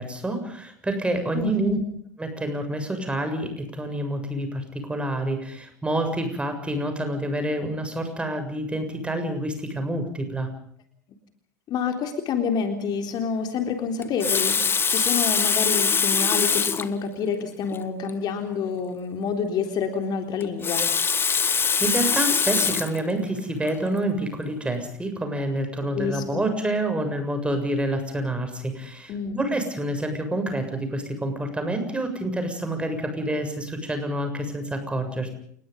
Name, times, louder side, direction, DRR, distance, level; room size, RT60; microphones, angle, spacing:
voice 1, 0.0-1.8 2.2-10.5 21.3-35.3, right 1 dB, 10° right, 7 dB, 7.3 m, -28 dB
voice 2, 1.3-1.8 11.7-20.9 25.9-26.5 29.1-29.4, left 6 dB, 45° left, 6 dB, 3.7 m, -28 dB
Water tap faucet, 14.0-16.9 17.7-17.8 18.1-18.2 20.4-23.0 23.7-23.9, left 6 dB, 25° left, 1.5 m, -23 dB
29.0 x 20.5 x 5.4 m, 0.64 s
hypercardioid pair, 80°, 10 cm